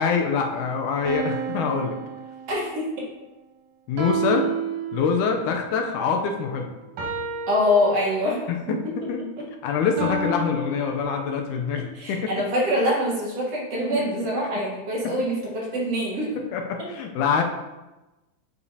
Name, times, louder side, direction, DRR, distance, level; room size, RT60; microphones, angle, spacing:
voice 1, 0.0-2.0 3.9-4.5 4.9-6.7 8.5-9.2 9.6-12.4 15.0-15.1 16.5-17.4, left 6 dB, 80° left, 3 dB, 2.1 m, -25 dB
sound 1, 1.0-2.8 4.0-5.4 7.0-8.5 10.0-11.0, right 4 dB, 80° right, 2.8 m, -30 dB
voice 2, 2.5-2.8 7.5-8.4 8.7-8.8 9.4-9.5 12.0-16.3, left 1 dB, 55° right, -4 dB, 2.1 m, -24 dB
9.7 x 4.9 x 2.7 m, 1.1 s
omnidirectional pair, 3.7 m